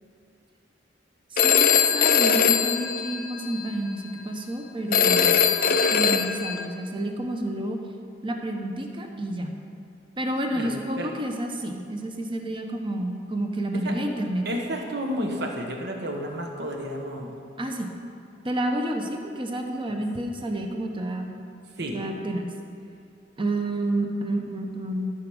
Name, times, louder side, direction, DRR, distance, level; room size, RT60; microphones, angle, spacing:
voice 1, 1.3-5.4 5.9-7.8 8.2-9.5 10.2-14.4 17.6-17.9 18.4-21.4 21.9-22.5 23.4-25.1, right 1 dB, 30° right, 3 dB, 0.9 m, -29 dB
Telephone, 1.4-3.7 4.9-6.6, left 7 dB, 50° left, 0.5 m, -21 dB
voice 2, 14.4-17.3 21.8-22.0, equal, 65° right, 2 dB, 1.3 m, -31 dB
13.5 x 5.0 x 6.3 m, 2.5 s
head